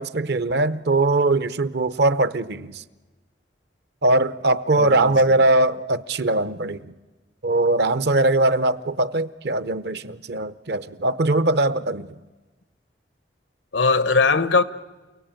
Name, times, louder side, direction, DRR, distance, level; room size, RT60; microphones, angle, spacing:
voice 1, 0.0-2.8 4.0-6.9 7.4-12.1, right 2 dB, 60° right, 0.7 m, -21 dB
voice 2, 4.8-5.1 13.7-14.6, left 4 dB, 90° left, 1.0 m, -19 dB
29.0 x 17.5 x 9.0 m
head